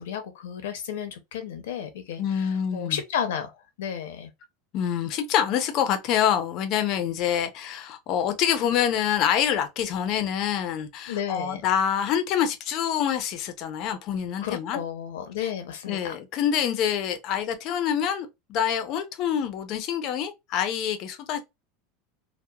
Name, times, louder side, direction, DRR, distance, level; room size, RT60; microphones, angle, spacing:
voice 1, 0.0-4.3 11.1-11.6 14.4-16.1, left 8 dB, 90° left, 0.6 m, -33 dB
voice 2, 2.2-3.0 4.7-14.8 15.4-15.5 15.9-21.4, left 9 dB, 40° left, 0.5 m, -26 dB
2.9 x 2.0 x 2.2 m
supercardioid pair, 160°, 0 cm